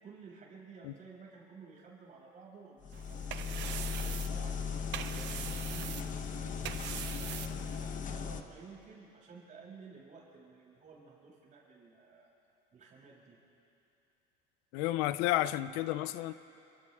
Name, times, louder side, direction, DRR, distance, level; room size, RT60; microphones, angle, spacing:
voice 1, 0.0-4.6 5.1-6.2 6.9-12.3 12.7-13.4, right 4 dB, 40° right, 6.9 m, -54 dB
sound 1, 2.8-8.4, left 6 dB, 40° left, 1.2 m, -37 dB
sound 2, 2.9-8.0, right 12 dB, 65° right, 0.9 m, -43 dB
voice 2, 14.7-16.3, left 15 dB, 85° left, 0.7 m, -31 dB
28.5 x 25.0 x 3.7 m
supercardioid pair, 105°, 20 cm